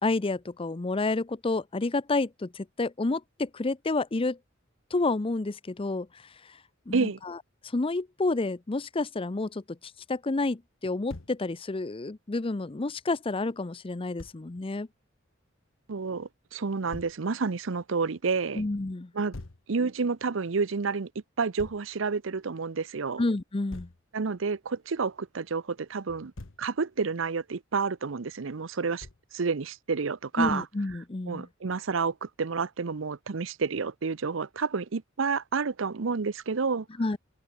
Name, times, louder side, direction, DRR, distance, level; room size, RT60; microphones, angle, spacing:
voice 1, 0.0-4.4 4.9-6.1 6.9-7.4 7.7-9.8 10.1-14.9 18.5-19.1 23.2-23.9 30.4-31.5 37.0-37.2, left 2 dB, 30° left, 0.6 m, -29 dB
Thump thud, 11.1-11.4 14.2-14.4 16.9-17.2 19.3-19.6 21.6-21.9 23.7-24.0 26.1-26.7 29.0-29.3, left 2 dB, 80° left, 1.2 m, -43 dB
voice 2, 15.9-18.6 19.1-19.3 19.7-21.1 21.4-23.2 24.1-26.3 26.6-29.1 29.3-30.7 31.3-36.9, right 4 dB, 70° right, 0.7 m, -29 dB
head